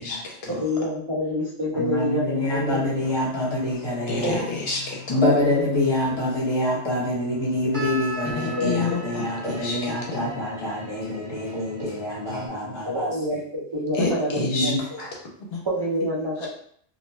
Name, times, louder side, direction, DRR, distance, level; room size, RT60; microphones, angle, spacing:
voice 1, 0.0-0.6 4.1-5.2 8.2-9.9 10.2-10.4 13.9-14.9 15.5-15.6, left 3 dB, 65° left, -1 dB, 0.8 m, -29 dB
voice 2, 0.6-2.9 4.2-4.4 5.3-5.7 8.6-8.7 12.8-14.7 15.6-16.5, left 1 dB, 40° right, -7 dB, 0.4 m, -27 dB
voice 3, 1.7-4.4 5.1-13.1 14.4-15.1, left 1 dB, 25° left, -6 dB, 1.0 m, -26 dB
sound 1, 3.0-12.5, left 1 dB, 65° right, 1.1 m, -39 dB
2.6 x 2.2 x 3.0 m, 0.63 s
omnidirectional pair, 1.2 m